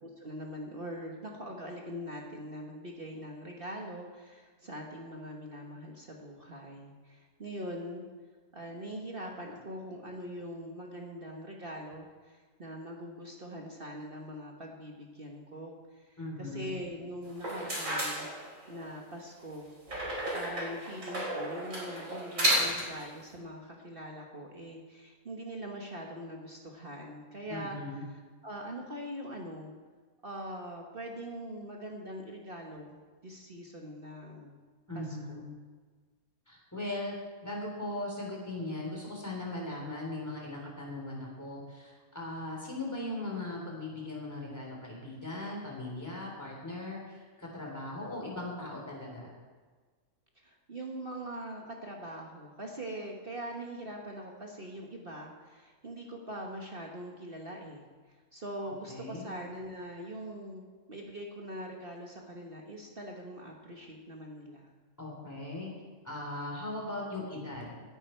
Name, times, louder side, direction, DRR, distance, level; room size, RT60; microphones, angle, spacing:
voice 1, 0.0-8.0 8.5-18.3 18.7-19.7 20.0-27.8 28.4-29.7 30.2-34.6 34.9-35.4 50.3-57.9 58.3-64.7, equal, 40° right, 0 dB, 1.5 m, -42 dB
voice 2, 16.2-16.7 27.5-28.0 34.9-35.4 36.5-37.2 37.4-49.3 58.6-59.3 65.0-65.7 66.0-67.8, left 2 dB, 10° left, -2 dB, 3.5 m, -39 dB
sound 1, 17.3-18.9 19.9-23.0, equal, 60° right, 4.9 m, -32 dB
18.0 x 10.0 x 4.5 m, 1.4 s
omnidirectional pair, 1.5 m